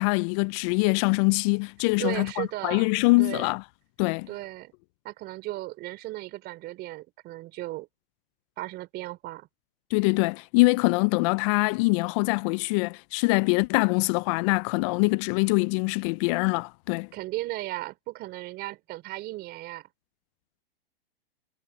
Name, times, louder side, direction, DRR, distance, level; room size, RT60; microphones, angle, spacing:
voice 1, 0.0-3.6 4.0-4.3 9.9-17.1, left 28 dB, 30° left, 0.4 m, -24 dB
voice 2, 2.0-2.9 3.2-3.5 4.3-4.7 5.0-7.9 8.6-9.5 17.1-19.9, right 17 dB, 35° right, 4.0 m, -36 dB
hypercardioid pair, 125°, 30 cm